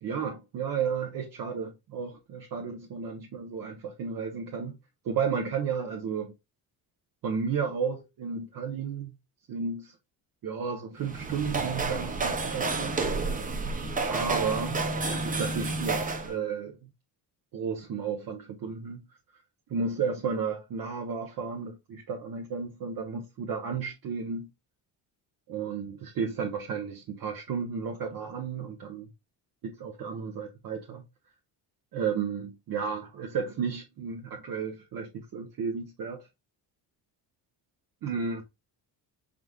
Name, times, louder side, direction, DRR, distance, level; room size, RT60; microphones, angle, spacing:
voice 1, 0.0-4.8 5.0-6.3 7.2-9.1 9.5-9.9 10.4-13.0 14.1-16.8 17.5-19.0 19.7-24.5 25.5-29.1 29.6-31.0 31.9-36.2 38.0-38.4, right 6 dB, 55° right, 0.9 m, -33 dB
sound 1, 11.0-16.3, right 3 dB, 20° right, 0.7 m, -30 dB
4.9 x 3.7 x 2.2 m
cardioid pair, 125°, 41 cm